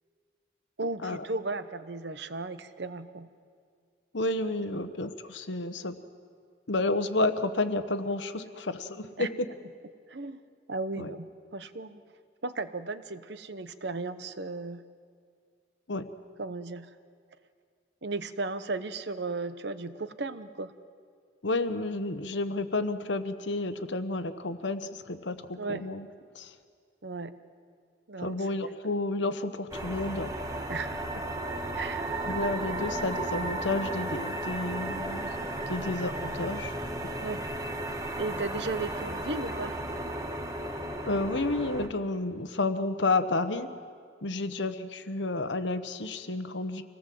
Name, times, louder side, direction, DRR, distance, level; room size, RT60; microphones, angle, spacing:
voice 1, 0.8-3.3 4.7-4.9 9.2-9.3 10.1-10.4 10.7-12.0 12.4-14.8 16.4-17.0 18.0-20.7 25.6-25.9 27.0-27.3 28.1-28.5 30.7-31.3 31.7-32.2 37.2-37.5 38.2-39.8, right 3 dB, 65° right, 12 dB, 1.0 m, -35 dB
voice 2, 4.1-6.0 6.7-9.3 11.0-11.1 15.9-16.1 21.4-26.1 26.3-26.5 28.2-30.3 32.3-36.7 37.0-37.1 41.1-43.7 44.2-46.8, left 2 dB, 80° left, 10 dB, 1.2 m, -31 dB
sound 1, 29.7-41.9, right 1 dB, 20° right, 1.4 m, -34 dB
26.0 x 18.5 x 7.8 m, 2.1 s
head